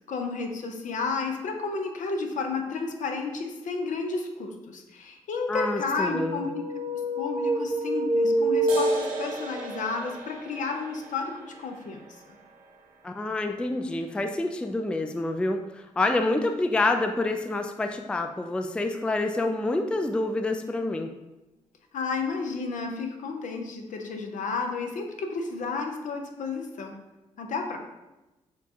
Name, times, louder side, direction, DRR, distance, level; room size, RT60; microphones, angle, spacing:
voice 1, 0.1-6.6 7.2-12.0 21.9-27.0 27.4-27.8, left 4 dB, 60° left, 4 dB, 0.6 m, -32 dB
voice 2, 5.5-6.5 13.0-21.1, left 2 dB, 5° left, 6 dB, 0.3 m, -27 dB
sound 1, 6.0-9.6, right 1 dB, 25° right, 1.0 m, -26 dB
sound 2, 8.7-15.7, right 2 dB, 75° right, 0.7 m, -41 dB
6.7 x 2.3 x 2.7 m, 1.0 s
hypercardioid pair, 45°, 15 cm